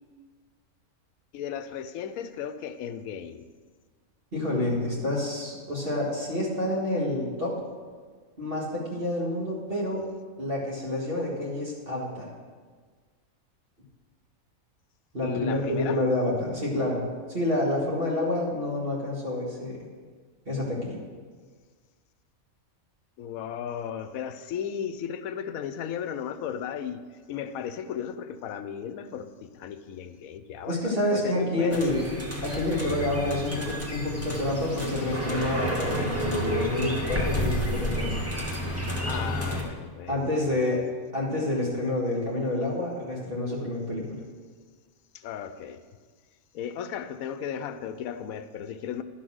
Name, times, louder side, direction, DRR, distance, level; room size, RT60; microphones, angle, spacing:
voice 1, 1.3-3.4 15.2-16.0 23.2-27.0 27.3-32.0 39.1-40.8 45.1-45.8 46.5-49.0, left 8 dB, 80° left, 11 dB, 1.0 m, -35 dB
voice 2, 4.3-7.5 8.4-10.1 10.4-12.3 15.1-19.8 20.5-21.0 30.7-32.0 32.4-38.2 40.1-40.8 41.1-44.2, left 1 dB, 40° right, -5 dB, 2.1 m, -28 dB
sound 1, 31.7-39.6, equal, 10° right, 1.2 m, -30 dB
11.5 x 5.8 x 6.2 m, 1.6 s
omnidirectional pair, 1.5 m